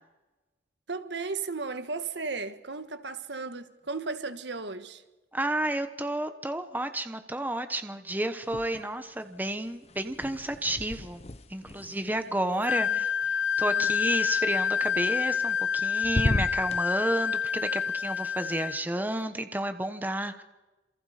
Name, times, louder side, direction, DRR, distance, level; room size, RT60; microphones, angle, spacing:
voice 1, 0.9-5.0 12.8-13.0 13.7-13.9, right 4 dB, 70° right, 1.4 m, -35 dB
voice 2, 5.3-11.2 11.5-20.4, right 1 dB, 10° right, 1.2 m, -31 dB
sound 1, 8.4-9.1 9.4-13.5 15.1-15.8 16.0-16.8, left 1 dB, 35° left, 0.9 m, -35 dB
Wind instrument woodwind instrument, 12.6-18.8, left 7 dB, 80° left, 0.7 m, -28 dB
28.0 x 27.5 x 5.1 m
head